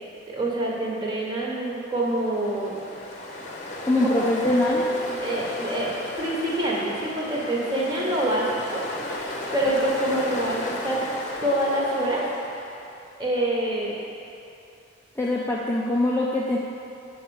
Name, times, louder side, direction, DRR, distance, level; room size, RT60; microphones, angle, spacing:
voice 1, 0.3-2.8 4.2-4.3 5.2-11.0 11.4-12.2 13.2-13.9, right 1 dB, 20° right, -4 dB, 1.3 m, -26 dB
Ocean, 1.9-12.9, left 1 dB, 35° left, 0.9 m, -33 dB
voice 2, 3.9-4.9 15.2-16.6, left 2 dB, 10° left, -5 dB, 0.5 m, -23 dB
8.3 x 4.7 x 7.1 m, 2.7 s
head